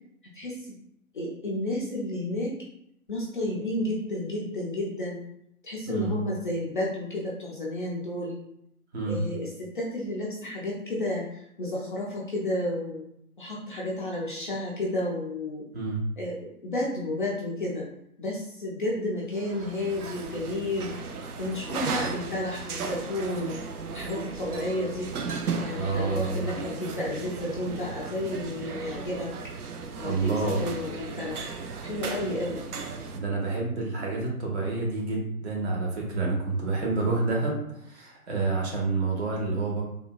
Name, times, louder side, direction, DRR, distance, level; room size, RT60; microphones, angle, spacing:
voice 1, 0.3-0.7 1.1-2.6 3.1-5.2 5.6-8.4 9.0-13.1 13.4-15.6 16.2-17.9 18.2-20.9 21.4-23.5 23.9-25.1 25.6-29.3 30.0-31.5 31.8-32.6, left 1 dB, 35° left, -4 dB, 0.5 m, -31 dB
voice 2, 5.9-6.2 8.9-9.2 15.7-16.0 25.7-26.5 30.0-30.6 33.1-39.8, right 3 dB, 45° right, -2 dB, 1.0 m, -28 dB
sound 1, 19.3-33.2, right 4 dB, 75° right, 0.6 m, -36 dB
3.6 x 2.2 x 2.3 m, 0.76 s
figure-of-eight pair, 120°, 45 cm